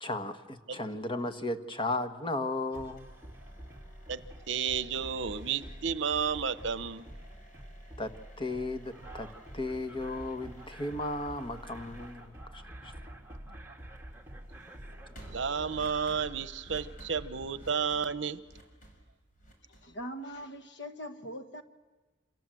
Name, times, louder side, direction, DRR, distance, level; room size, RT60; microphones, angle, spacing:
voice 1, 0.0-3.1 8.0-9.3 9.5-12.9, left 2 dB, 25° left, 1.4 m, -35 dB
sound 1, 2.7-20.7, right 1 dB, 45° left, 6.1 m, -57 dB
sound 2, 2.7-17.7, right 1 dB, 10° right, 2.0 m, -48 dB
voice 2, 4.5-7.1 15.3-18.4, right 6 dB, 65° right, 0.9 m, -32 dB
voice 3, 19.7-21.6, equal, 60° left, 1.6 m, -41 dB
27.5 x 26.5 x 7.7 m
head